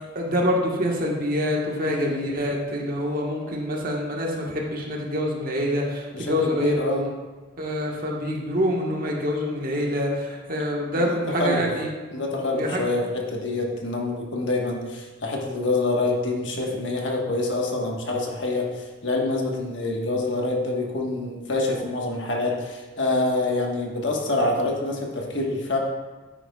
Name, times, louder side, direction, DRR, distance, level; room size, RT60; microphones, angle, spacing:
voice 1, 0.1-7.1 7.6-11.9 12.5-12.9, equal, 50° right, -1 dB, 1.4 m, -26 dB
voice 2, 1.8-2.3 6.1-7.1 10.9-11.7 12.1-25.8, left 2 dB, 70° left, 0 dB, 1.4 m, -26 dB
9.9 x 9.0 x 2.4 m, 1.3 s
head